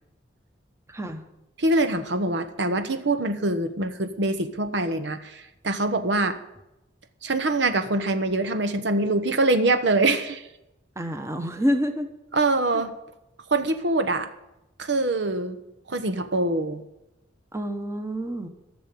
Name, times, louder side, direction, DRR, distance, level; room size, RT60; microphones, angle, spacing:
voice 1, 0.9-1.2 11.0-12.1 17.5-18.5, equal, 15° right, 6 dB, 1.1 m, -27 dB
voice 2, 1.6-6.4 7.2-10.5 12.3-12.9 13.5-14.3 14.8-15.6 15.9-16.8, right 2 dB, 60° right, 9 dB, 0.9 m, -24 dB
14.0 x 7.0 x 9.1 m, 0.91 s
head